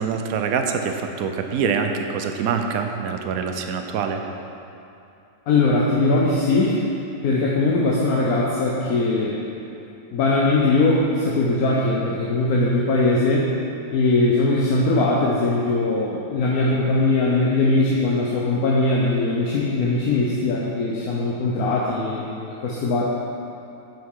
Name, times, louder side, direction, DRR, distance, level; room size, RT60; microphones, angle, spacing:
voice 1, 0.0-4.2, right 6 dB, 75° right, 5 dB, 1.0 m, -25 dB
voice 2, 5.5-6.8 7.2-9.4 10.1-13.5 13.9-23.1, left 2 dB, 80° left, -4 dB, 1.2 m, -20 dB
7.2 x 5.8 x 4.7 m, 2.7 s
omnidirectional pair, 1.5 m